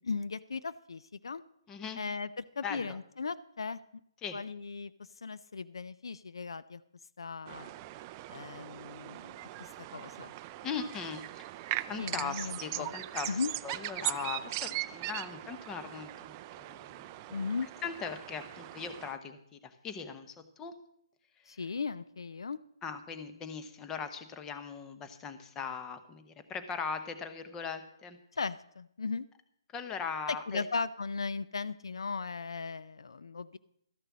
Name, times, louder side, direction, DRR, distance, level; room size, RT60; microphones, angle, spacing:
voice 1, 0.0-1.4 2.0-3.8 4.3-4.9 5.2-6.8 7.2-7.7 8.3-9.4 9.9-10.3 11.9-12.9 13.3-13.5 17.3-17.7 21.5-22.6 28.3-29.3 30.3-33.6, left 4 dB, 70° left, 15 dB, 0.5 m, -37 dB
voice 2, 1.7-2.0 2.6-3.0 4.2-4.4 10.6-17.5 17.8-20.7 22.8-28.2 29.7-30.7, left 6 dB, 15° left, 8 dB, 0.9 m, -40 dB
sound 1, 7.5-19.2, right 15 dB, 25° right, 0.4 m, -40 dB
13.0 x 6.7 x 7.3 m, 0.72 s
figure-of-eight pair, 145°, 3 cm